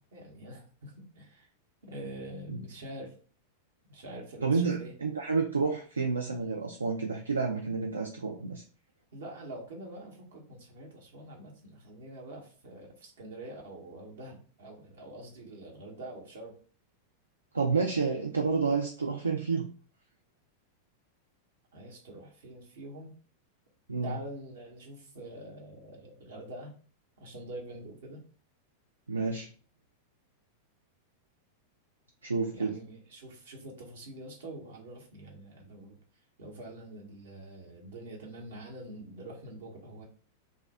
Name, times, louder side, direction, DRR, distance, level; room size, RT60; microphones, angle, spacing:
voice 1, 0.0-1.5 1.8-3.1 3.9-4.9 9.1-16.5 21.7-23.1 24.0-26.7 27.2-28.2 32.5-36.0 36.4-40.1, right 1 dB, 65° right, 0 dB, 0.9 m, -45 dB
voice 2, 4.4-8.6 17.5-19.7 23.9-24.2 29.1-29.5 32.2-32.8, right 4 dB, 80° right, 2 dB, 0.3 m, -29 dB
2.6 x 2.1 x 3.3 m, 0.41 s
figure-of-eight pair, 90°, 0 cm